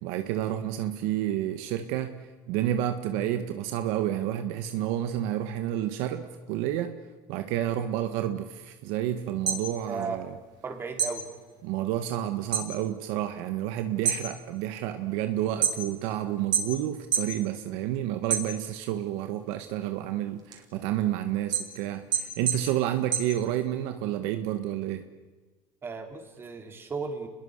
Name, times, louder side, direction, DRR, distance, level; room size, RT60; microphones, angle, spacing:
voice 1, 0.0-7.0 7.3-10.3 11.6-25.0, right 12 dB, 70° right, 7 dB, 1.6 m, -30 dB
sound 1, 9.3-10.6 10.9-12.7 13.1-13.5 13.9-16.1 16.5-17.4 17.7-18.9 19.4-23.9, right 7 dB, 45° right, 5.4 m, -30 dB
voice 2, 10.6-11.3 25.8-27.3, right 4 dB, 25° right, 4 dB, 3.8 m, -35 dB
30.0 x 21.5 x 6.7 m, 1.3 s
cardioid pair, 135°, 10 cm